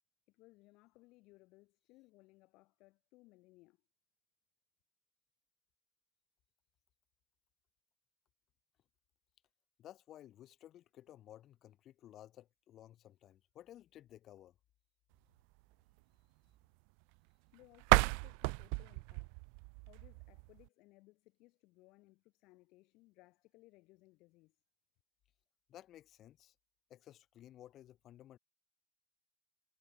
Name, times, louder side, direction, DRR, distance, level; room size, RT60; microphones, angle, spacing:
voice 1, 0.3-3.8 17.5-19.3 19.9-24.6, left 22 dB, 75° left, 7.6 m, -64 dB
voice 2, 9.8-14.5 25.7-26.5 26.9-28.4, left 12 dB, 55° left, 2.6 m, -56 dB
sound 1, 17.8-20.7, right 40 dB or more, 85° right, 0.3 m, -33 dB
supercardioid pair, 105°, 0 cm